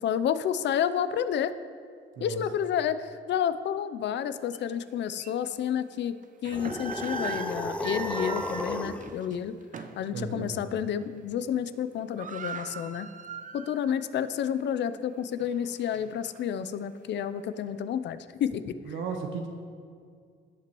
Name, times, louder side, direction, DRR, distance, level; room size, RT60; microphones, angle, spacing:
voice 1, 0.0-1.5 2.2-6.1 6.4-9.5 10.0-13.1 13.5-18.7, left 9 dB, 65° left, 13 dB, 0.5 m, -30 dB
sound 1, 4.5-4.6 5.2-5.3 6.2-10.1 10.5-10.7 11.0-11.4 11.7-11.8 12.0-13.9 14.3-14.4 15.0-16.4, right 5 dB, 40° right, 0.7 m, -40 dB
sound 2, 6.5-9.1, left 1 dB, 5° left, 0.5 m, -33 dB
voice 2, 10.1-10.6 18.8-19.5, right 5 dB, 75° right, 3 dB, 0.9 m, -35 dB
16.5 x 5.9 x 3.0 m, 2.2 s
cardioid pair, 90°, 20 cm